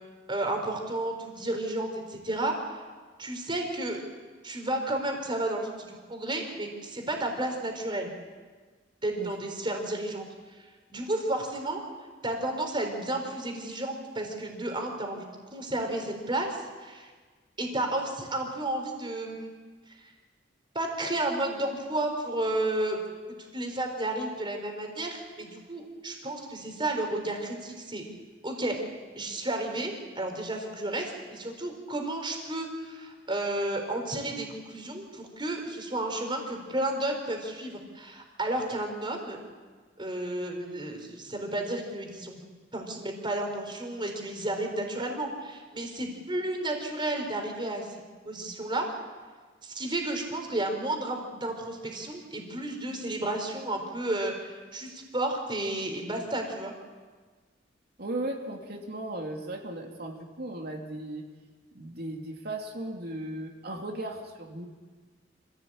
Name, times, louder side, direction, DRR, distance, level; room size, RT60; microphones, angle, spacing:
voice 1, 0.3-2.5 3.2-4.0 4.4-8.1 9.0-10.3 10.6-11.8 12.2-15.3 15.5-17.1 17.6-19.5 19.9-20.0 20.7-23.0 23.5-28.0 28.4-28.8 29.2-39.4 40.0-42.4 42.7-48.9 49.6-56.7, right 1 dB, 25° right, 3 dB, 4.2 m, -32 dB
voice 2, 58.0-61.2 61.7-64.7, right 1 dB, 55° right, 1 dB, 2.9 m, -36 dB
26.5 x 16.0 x 8.8 m, 1.4 s
head